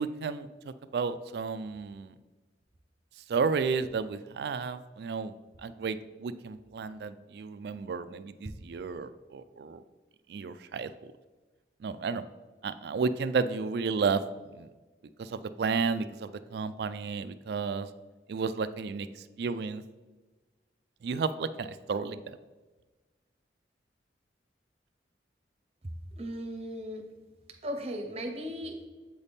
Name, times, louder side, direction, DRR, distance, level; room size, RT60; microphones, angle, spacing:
voice 1, 0.0-2.1 3.3-5.3 5.6-9.8 10.3-10.9 11.8-12.2 12.6-14.2 14.5-14.7 15.2-17.9 18.3-19.8 21.0-22.4, right 5 dB, 65° right, 13 dB, 0.3 m, -32 dB
voice 2, 26.2-27.0 27.6-28.9, equal, 35° right, 3 dB, 0.7 m, -37 dB
8.0 x 4.1 x 3.4 m, 1.3 s
head